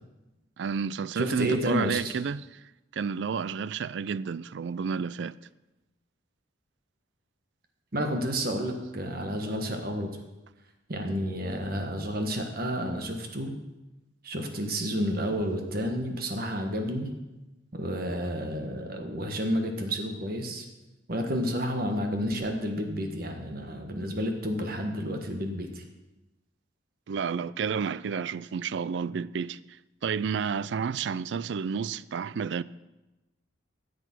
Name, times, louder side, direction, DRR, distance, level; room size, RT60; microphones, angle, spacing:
voice 1, 0.6-2.6 2.9-5.3 27.1-29.8 30.0-32.6, right 6 dB, 65° right, 0.4 m, -30 dB
voice 2, 1.1-2.1 7.9-10.2 10.9-13.5 14.2-17.1 17.7-20.7 21.1-25.8, equal, 50° right, 1.4 m, -30 dB
13.5 x 8.0 x 6.1 m
head